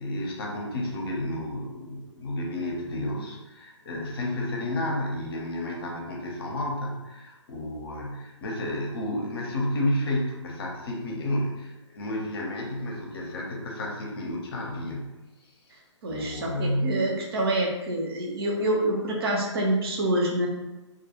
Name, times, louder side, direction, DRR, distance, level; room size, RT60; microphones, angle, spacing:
voice 1, 0.0-15.1 15.4-15.5 16.1-17.1, left 1 dB, 50° left, -1 dB, 0.7 m, -31 dB
voice 2, 16.0-20.5, right 1 dB, 50° right, -1 dB, 0.7 m, -26 dB
2.4 x 2.2 x 2.8 m, 1.0 s
figure-of-eight pair, 130°, 16 cm